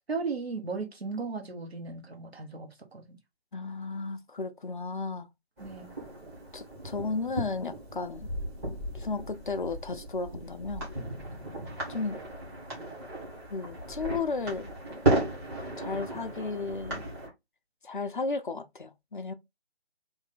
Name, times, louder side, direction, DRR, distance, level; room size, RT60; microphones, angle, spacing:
voice 1, 0.1-3.2 5.6-5.9, right 4 dB, 70° right, 1.4 m, -36 dB
voice 2, 3.5-5.3 6.5-8.3 8.9-10.9 11.9-12.2 13.5-14.7 15.8-17.0 17.8-19.3, left 4 dB, 50° left, 0.5 m, -34 dB
sound 1, 5.6-17.3, right 2 dB, 15° right, 1.3 m, -35 dB
3.2 x 2.7 x 3.7 m
figure-of-eight pair, 150°, 32 cm